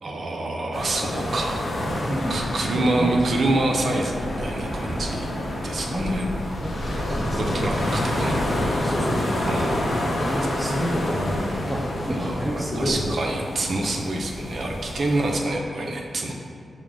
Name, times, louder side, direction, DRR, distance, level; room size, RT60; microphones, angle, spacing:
voice 1, 0.0-1.7 2.3-5.3 5.6-6.2 7.4-8.4 9.4-10.0 12.1-16.3, right 2 dB, 60° right, 0 dB, 0.4 m, -27 dB
sound 1, 0.7-15.4, left 1 dB, 60° left, 0.7 m, -28 dB
voice 2, 2.0-3.1 5.8-6.3 6.6-7.5 8.8-9.8 10.2-13.4, equal, ahead, -2 dB, 0.7 m, -29 dB
5.8 x 2.1 x 3.6 m, 2.2 s
cardioid pair, 75°, 0 cm